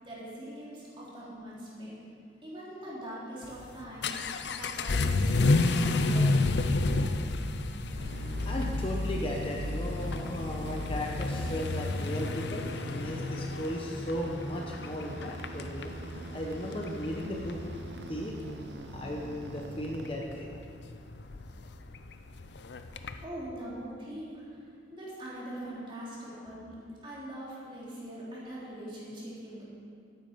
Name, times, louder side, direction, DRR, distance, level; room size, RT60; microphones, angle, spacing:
voice 1, 0.0-1.9 2.4-4.1 4.5-6.8 23.2-24.6 24.9-29.6, right 1 dB, 30° right, -7 dB, 3.3 m, -42 dB
Vehicle / Accelerating revving vroom, 3.4-23.2, left 2 dB, 70° left, 0.6 m, -31 dB
sound 1, 7.9-20.8, right 1 dB, 70° right, 0.8 m, -43 dB
voice 2, 8.4-15.9 16.3-17.6 18.1-18.3 18.9-20.5 26.3-26.4, equal, 30° left, -1 dB, 0.9 m, -36 dB
12.0 x 9.4 x 5.3 m, 2.4 s
head